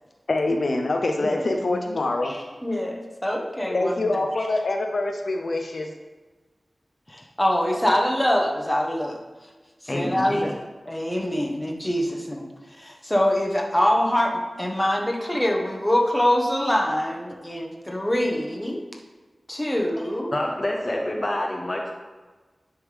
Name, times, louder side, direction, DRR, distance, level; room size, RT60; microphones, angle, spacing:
voice 1, 0.3-2.3 3.7-5.9, left 2 dB, 75° left, 3 dB, 0.5 m, -25 dB
voice 2, 2.6-3.9 7.1-9.2 9.9-10.5 10.9-12.5 12.8-18.8 19.5-20.3, left 1 dB, 15° left, 0 dB, 1.1 m, -24 dB
voice 3, 9.9-10.5 20.3-21.9, left 1 dB, 40° left, 1 dB, 0.7 m, -28 dB
10.0 x 3.5 x 3.3 m, 1.3 s
wide cardioid pair, 60°, 0 cm